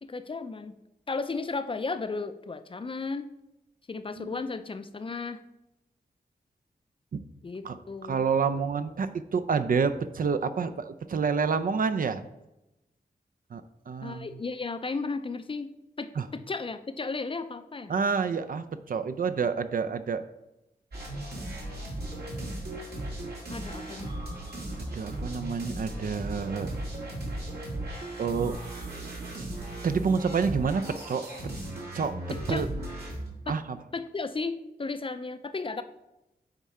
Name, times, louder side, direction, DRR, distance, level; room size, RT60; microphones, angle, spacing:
voice 1, 0.0-0.8 1.1-3.3 3.9-5.4 7.4-8.2 14.0-15.7 16.0-17.9 23.5-24.1 32.3-32.7 33.5-33.6 33.9-35.8, left 4 dB, 35° left, 11 dB, 0.4 m, -34 dB
voice 2, 4.2-4.5 7.1-7.2 7.6-7.8 8.1-12.2 13.5-14.3 16.2-16.3 17.9-20.2 24.9-26.7 28.2-28.6 29.4-29.5 29.8-31.2 31.9-32.2 32.5-32.7 33.5-33.8, right 5 dB, 60° right, 10 dB, 0.5 m, -28 dB
sound 1, 20.9-33.3, right 1 dB, 75° right, 2.2 m, -37 dB
8.9 x 3.7 x 4.2 m, 0.92 s
wide cardioid pair, 85°, 16 cm